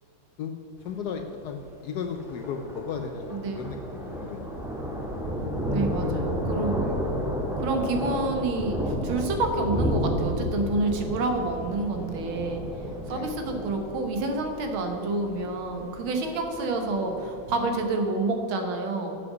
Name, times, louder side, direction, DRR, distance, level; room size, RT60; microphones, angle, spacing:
voice 1, 0.8-4.5 6.0-6.1 6.8-6.9 13.1-13.3, left 6 dB, 75° left, 5 dB, 0.9 m, -35 dB
Thunder, 0.8-17.7, equal, ahead, 1.2 m, -32 dB
voice 2, 3.3-3.8 5.7-6.9 7.6-12.6 13.1-19.2, right 2 dB, 85° right, 4 dB, 1.9 m, -28 dB
7.7 x 7.6 x 6.1 m, 3.0 s
omnidirectional pair, 2.2 m